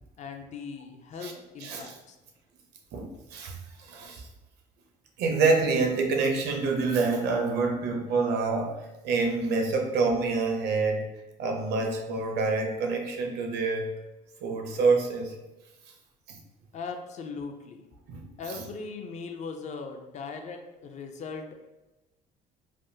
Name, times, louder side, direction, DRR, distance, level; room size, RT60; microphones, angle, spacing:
voice 1, 0.2-2.2 16.7-17.8 18.4-21.6, left 4 dB, 45° left, 5 dB, 0.4 m, -39 dB
voice 2, 1.6-2.0 2.9-4.3 5.2-11.1 11.4-13.9 14.4-15.4 16.3-16.4 18.1-18.6, right 4 dB, 75° right, 3 dB, 0.6 m, -27 dB
3.4 x 2.1 x 2.6 m, 1.1 s
cardioid pair, 110°, 17 cm